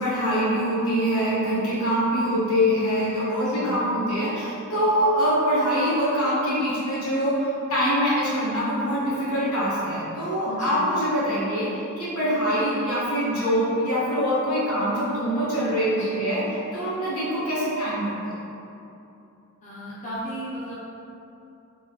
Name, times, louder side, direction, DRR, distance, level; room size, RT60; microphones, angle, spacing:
voice 1, 0.0-16.4 16.7-18.3, equal, 75° left, -8 dB, 1.1 m, -24 dB
voice 2, 3.3-3.7 9.3-9.6 10.4-10.8 15.9-16.3 19.6-20.8, equal, 35° left, -10 dB, 0.5 m, -35 dB
3.5 x 2.6 x 3.0 m, 2.8 s
head